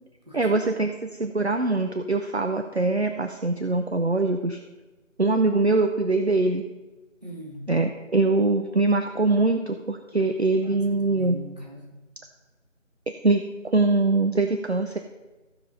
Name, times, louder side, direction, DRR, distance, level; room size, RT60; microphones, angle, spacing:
voice 1, 0.3-4.6 5.2-6.6 7.7-11.4 13.1-13.4 13.7-15.0, right 3 dB, 55° right, 6 dB, 0.6 m, -23 dB
voice 2, 7.2-7.7 10.1-10.2 10.6-11.9, equal, 30° right, -1 dB, 1.5 m, -40 dB
14.5 x 5.1 x 5.4 m, 1.2 s
figure-of-eight pair, 175°, 40 cm